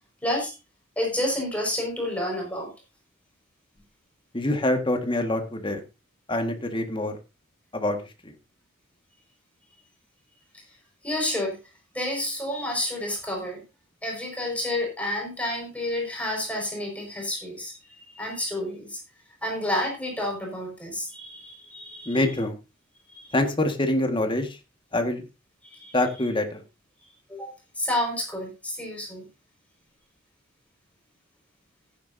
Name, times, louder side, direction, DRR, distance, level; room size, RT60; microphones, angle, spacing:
voice 1, 0.2-0.5 1.0-2.7 11.0-11.6 11.9-13.6 14.0-19.0 19.4-22.2 23.1-23.3 25.6-26.0 27.3-29.3, left 1 dB, 5° left, 0 dB, 5.5 m, -30 dB
voice 2, 4.3-5.8 6.3-7.1 7.7-8.0 8.2-8.3 22.1-22.6 23.3-24.6 24.9-25.2 25.9-26.6, left 1 dB, 25° left, 5 dB, 1.7 m, -25 dB
15.0 x 9.7 x 2.7 m, 0.27 s
head